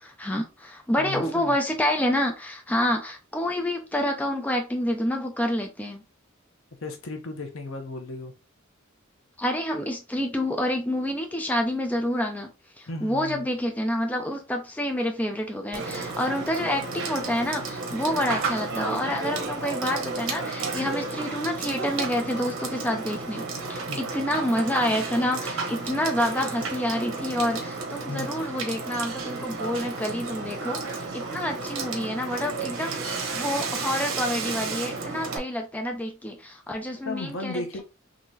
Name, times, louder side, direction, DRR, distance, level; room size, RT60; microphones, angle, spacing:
voice 1, 0.0-6.0 9.4-12.5 12.8-37.6, left 1 dB, 10° left, 0.5 m, -28 dB
voice 2, 1.0-1.6 6.8-8.3 12.9-13.5 20.8-20.9 23.9-24.0 28.1-28.3 37.0-37.8, left 2 dB, 70° left, 0.8 m, -35 dB
Water / Water tap faucet / Sink (filling or washing), 15.7-35.4, right 3 dB, 90° right, 1.0 m, -32 dB
3.8 x 2.9 x 2.7 m
head